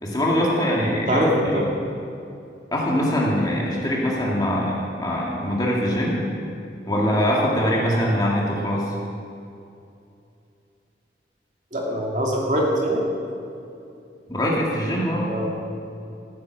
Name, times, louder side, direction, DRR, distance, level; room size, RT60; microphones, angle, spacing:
voice 1, 0.0-1.2 2.7-6.2 6.9-8.9 14.3-15.3, equal, 20° left, -4 dB, 2.2 m, -22 dB
voice 2, 1.0-1.7 11.7-13.0 15.3-15.6, equal, 45° right, -2 dB, 2.2 m, -23 dB
14.0 x 9.5 x 6.2 m, 2.6 s
head